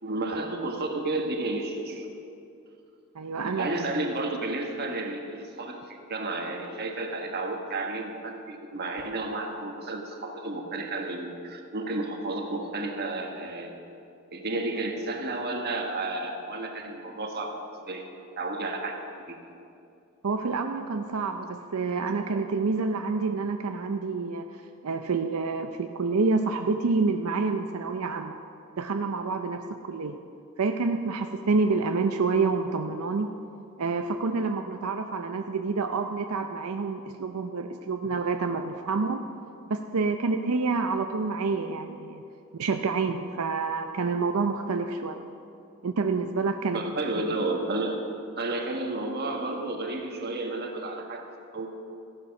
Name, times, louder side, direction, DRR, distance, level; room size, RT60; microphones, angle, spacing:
voice 1, 0.0-2.1 3.4-5.8 6.1-13.7 14.3-17.6 17.8-18.0 18.4-19.0 19.3-19.5 46.7-48.0 48.4-51.2 51.5-51.7, right 2 dB, 50° right, 3 dB, 1.4 m, -32 dB
voice 2, 3.1-3.7 20.2-28.4 28.8-30.2 30.6-33.3 33.8-39.2 39.7-42.2 42.6-45.2 45.8-46.8, right 4 dB, 80° right, 6 dB, 0.6 m, -28 dB
14.5 x 10.5 x 5.9 m, 2.6 s
head